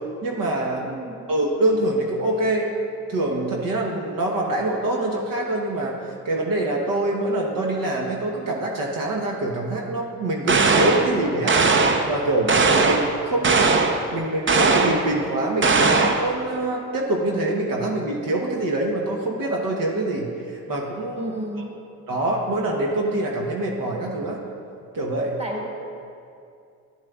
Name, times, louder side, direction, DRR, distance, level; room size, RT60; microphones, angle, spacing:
voice 1, 0.2-0.8 1.3-2.7 3.1-11.6 12.0-21.6 22.1-24.4 24.9-25.3, right 2 dB, 60° right, -1 dB, 1.1 m, -25 dB
voice 2, 0.8-1.3 21.2-21.7 25.4-25.7, right 1 dB, 15° right, -1 dB, 1.7 m, -32 dB
sound 1, 10.5-11.1 11.5-12.1 12.5-13.1 13.4-14.0 14.5-15.0 15.6-16.3, right 4 dB, 30° right, 0.7 m, -18 dB
12.0 x 7.4 x 2.4 m, 2.5 s
supercardioid pair, 55°, 38 cm